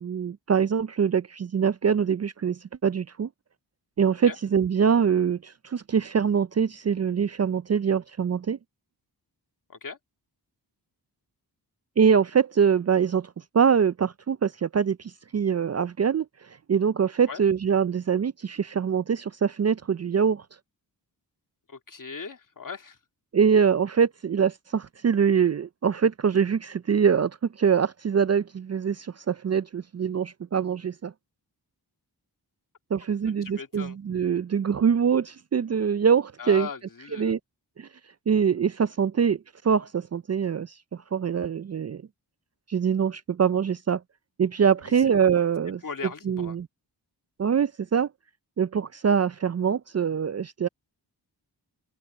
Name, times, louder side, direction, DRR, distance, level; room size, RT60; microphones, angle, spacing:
voice 1, 0.0-3.3 4.0-8.6 12.0-16.3 16.7-20.4 23.3-31.1 32.9-36.7 37.1-37.4 37.8-37.9 38.3-39.4 39.6-42.0 42.7-44.0 44.4-45.8 46.3-46.7 47.4-48.1 48.6-50.7, right 7 dB, 40° right, 0.5 m, -24 dB
voice 2, 21.7-23.0 33.2-34.0 36.4-37.3 44.9-45.1 45.8-46.6, left 5 dB, 50° left, 2.5 m, -38 dB
wide cardioid pair, 70°, 41 cm